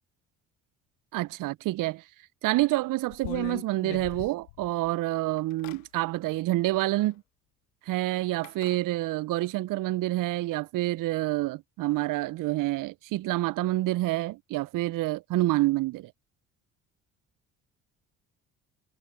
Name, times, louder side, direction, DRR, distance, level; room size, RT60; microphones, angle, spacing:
voice 1, 1.1-2.0 2.4-7.2 7.9-16.1, right 17 dB, 55° right, 0.7 m, -28 dB
sound 1, 2.6-2.7 3.1-4.9 5.4-5.8 7.1-7.2 8.4-8.8, left 24 dB, 80° left, 1.4 m, -40 dB
hypercardioid pair, 55°, 39 cm